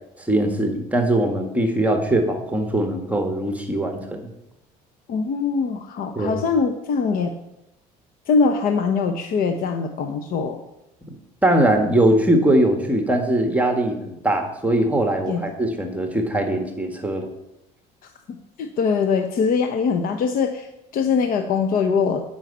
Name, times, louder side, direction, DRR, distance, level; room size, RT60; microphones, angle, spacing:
voice 1, 0.3-4.2 6.2-6.4 11.4-17.3, right 1 dB, 10° right, 4 dB, 1.6 m, -21 dB
voice 2, 5.1-7.3 8.3-10.6 15.3-15.4 18.6-20.7 20.9-22.2, left 5 dB, 55° left, 5 dB, 1.0 m, -22 dB
9.2 x 5.7 x 8.1 m, 0.86 s
supercardioid pair, 100°, 17 cm